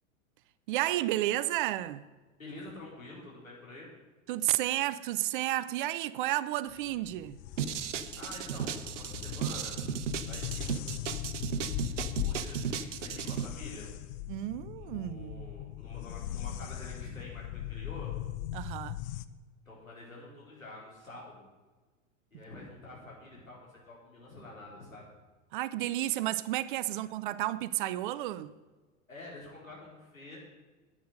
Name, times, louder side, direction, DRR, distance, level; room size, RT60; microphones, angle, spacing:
voice 1, 0.7-2.0 4.3-7.4 14.3-15.5 18.5-19.0 25.5-28.5, right 15 dB, 40° right, 0.5 m, -32 dB
voice 2, 2.4-3.9 8.1-9.8 10.2-11.9 12.2-13.9 14.8-18.1 19.7-21.5 22.3-25.1 29.1-30.4, left 2 dB, 85° left, 4.6 m, -48 dB
sound 1, 6.7-19.3, left 12 dB, 35° left, 0.5 m, -39 dB
sound 2, 7.6-13.5, right 8 dB, 65° right, 0.9 m, -35 dB
10.0 x 8.8 x 6.6 m
figure-of-eight pair, 90°, 39 cm